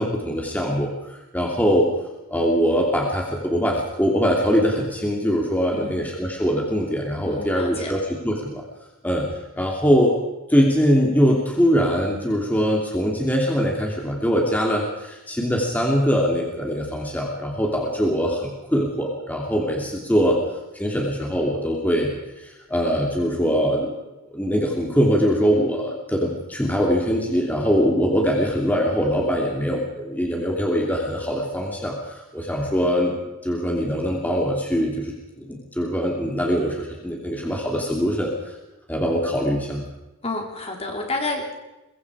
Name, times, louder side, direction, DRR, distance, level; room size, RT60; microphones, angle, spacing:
voice 1, 0.0-1.9 2.3-8.0 8.2-8.6 9.0-9.3 9.6-10.2 10.5-20.4 20.7-22.1 22.4-23.9 24.3-33.1 33.4-38.6 38.9-39.8, equal, 5° left, -1 dB, 2.9 m, -22 dB
voice 2, 5.7-6.1 7.2-8.0 40.2-41.6, left 2 dB, 30° left, 2 dB, 3.7 m, -30 dB
23.5 x 22.5 x 4.9 m, 0.99 s
head